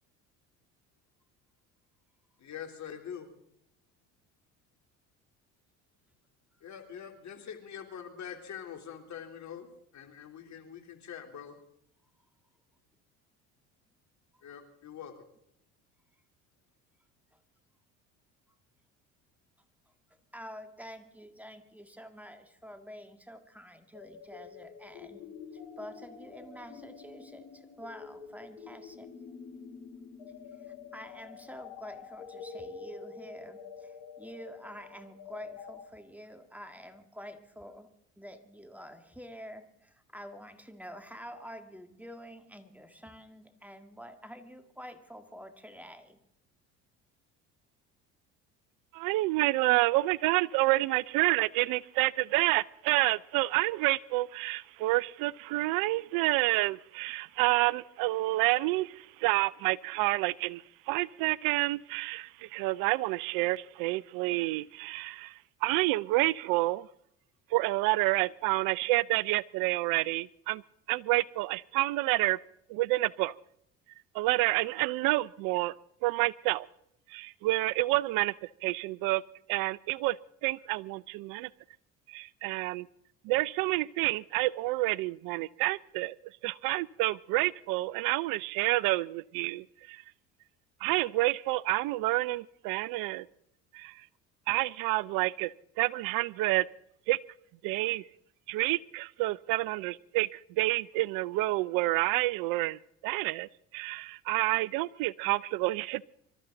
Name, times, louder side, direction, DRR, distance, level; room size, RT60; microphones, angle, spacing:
voice 1, 2.4-3.3 6.6-9.7 9.9-11.6 14.4-15.1, left 8 dB, 50° left, 5 dB, 3.4 m, -44 dB
voice 2, 20.3-25.2 25.5-29.1 30.6-46.2, equal, 5° right, 8 dB, 2.0 m, -48 dB
sound 1, 23.9-35.8, left 6 dB, 85° left, 3.0 m, -47 dB
voice 3, 48.9-66.9 67.5-70.6 70.9-72.4 72.7-73.3 74.1-75.7 76.0-76.7 77.1-79.2 79.5-81.5 82.1-82.9 83.2-86.2 86.4-90.0 90.8-93.3 93.7-94.1 94.5-96.7 97.1-97.2 97.6-98.0 98.5-106.0, right 20 dB, 65° right, 23 dB, 0.5 m, -29 dB
25.0 x 13.5 x 3.9 m, 0.73 s
hypercardioid pair, 70°, 37 cm